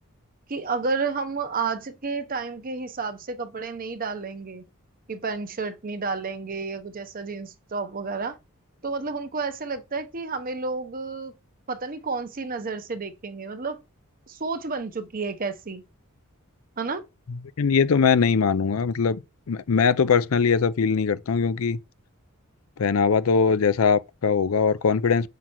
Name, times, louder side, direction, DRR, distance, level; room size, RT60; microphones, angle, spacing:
voice 1, 0.5-4.6 5.1-8.4 8.8-11.3 11.7-13.8 14.3-15.8 16.8-17.0, right 4 dB, 40° right, 0.8 m, -31 dB
voice 2, 17.6-19.2 19.5-21.8 22.8-25.3, left 5 dB, 70° left, 0.5 m, -21 dB
7.4 x 5.8 x 3.0 m
head